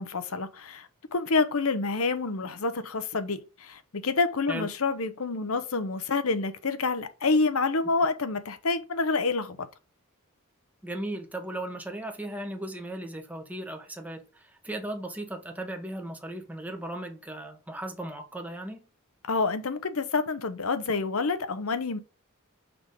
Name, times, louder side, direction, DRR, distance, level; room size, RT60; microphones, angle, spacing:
voice 1, 0.0-9.6 19.2-22.0, left 3 dB, 70° left, 0.8 m, -28 dB
voice 2, 10.8-18.8, right 1 dB, 5° right, 1.0 m, -37 dB
6.0 x 3.5 x 5.2 m
head